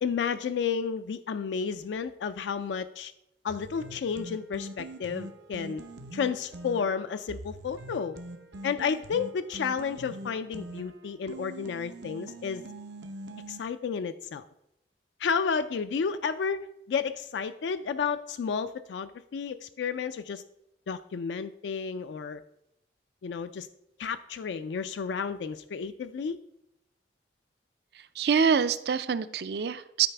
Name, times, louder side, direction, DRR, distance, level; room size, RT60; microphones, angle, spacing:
voice 1, 0.0-3.1 3.4-5.8 6.1-8.2 8.6-12.7 13.5-14.4 15.2-20.4 20.9-22.4 23.2-23.7 24.0-26.4, left 6 dB, 80° left, 10 dB, 0.3 m, -31 dB
sound 1, 3.5-13.6, right 1 dB, 80° right, 0.8 m, -43 dB
voice 2, 27.9-30.1, right 6 dB, 60° right, 14 dB, 0.4 m, -26 dB
12.0 x 4.8 x 3.4 m, 0.82 s
head